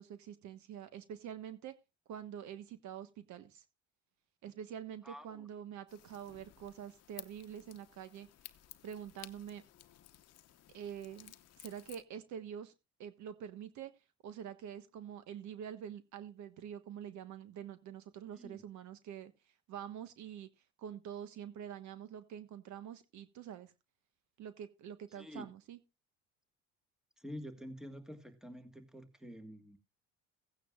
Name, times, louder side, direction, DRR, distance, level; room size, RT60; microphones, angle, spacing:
voice 1, 0.0-1.7 2.1-3.6 4.4-8.3 8.8-9.6 10.7-12.7 13.0-13.9 14.2-19.3 19.7-20.5 20.8-23.7 24.4-25.8, right 9 dB, 60° right, 1.3 m, -46 dB
voice 2, 5.0-5.5 18.4-18.6 25.1-25.5 27.2-29.8, equal, ahead, 1.7 m, -48 dB
sound 1, 5.9-12.0, left 12 dB, 50° left, 0.9 m, -56 dB
16.5 x 9.2 x 2.4 m
supercardioid pair, 100°, 32 cm